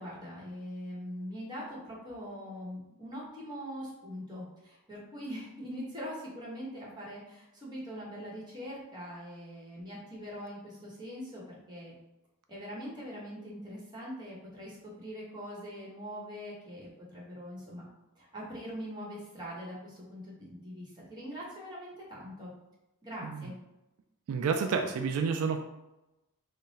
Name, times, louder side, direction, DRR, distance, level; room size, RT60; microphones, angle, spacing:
voice 1, 0.0-11.9 12.5-17.8 18.2-22.5 23.0-23.5, equal, 20° right, -5 dB, 1.2 m, -42 dB
voice 2, 24.3-25.6, right 5 dB, 80° right, 6 dB, 0.3 m, -30 dB
3.8 x 2.2 x 4.1 m, 0.96 s
head